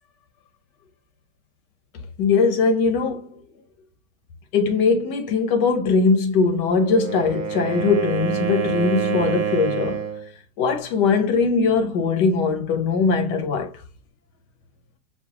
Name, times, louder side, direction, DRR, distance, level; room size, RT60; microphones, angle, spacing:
voice 1, 2.2-3.4 4.5-10.1 10.6-13.7, left 4 dB, 85° left, 1.5 m, -20 dB
Wind instrument woodwind instrument, 6.7-10.3, right 7 dB, 45° right, 0.9 m, -27 dB
5.9 x 2.4 x 2.8 m
omnidirectional pair, 1.8 m